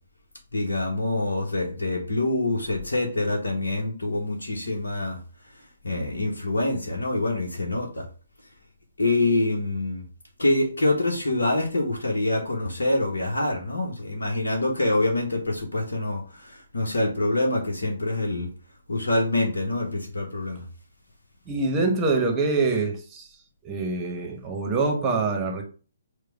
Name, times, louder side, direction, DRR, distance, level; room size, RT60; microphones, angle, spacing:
voice 1, 0.5-5.2 5.8-8.1 9.0-10.0 10.4-18.5 18.9-20.6, left 2 dB, 70° left, 1.1 m, -25 dB
voice 2, 21.5-23.3 23.6-25.6, right 3 dB, 15° right, 1.0 m, -25 dB
4.9 x 2.3 x 4.6 m
figure-of-eight pair, 135°, 0 cm